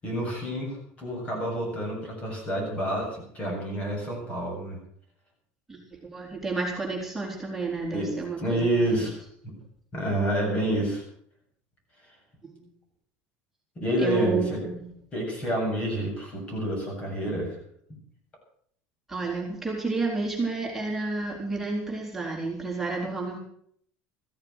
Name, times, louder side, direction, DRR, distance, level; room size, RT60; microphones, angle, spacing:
voice 1, 0.0-4.8 7.9-9.2 9.9-11.0 13.8-14.6 15.1-17.6, right 1 dB, 25° left, 1 dB, 7.8 m, -28 dB
voice 2, 5.7-9.0 12.4-12.5 14.0-14.9 19.1-23.4, right 3 dB, 5° right, -2 dB, 4.2 m, -31 dB
15.0 x 13.5 x 6.5 m, 0.64 s
cardioid pair, 155°, 5 cm